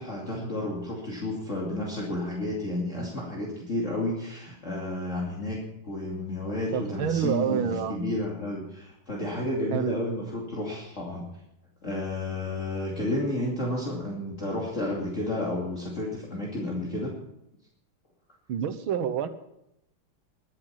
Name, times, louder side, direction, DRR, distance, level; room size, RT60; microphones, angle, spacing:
voice 1, 0.0-11.2 11.8-17.2, left 1 dB, 35° left, -4 dB, 2.8 m, -31 dB
voice 2, 6.7-8.0 9.7-10.0 18.5-19.3, right 8 dB, 70° right, 11 dB, 1.8 m, -28 dB
22.0 x 7.9 x 5.7 m, 0.82 s
omnidirectional pair, 2.4 m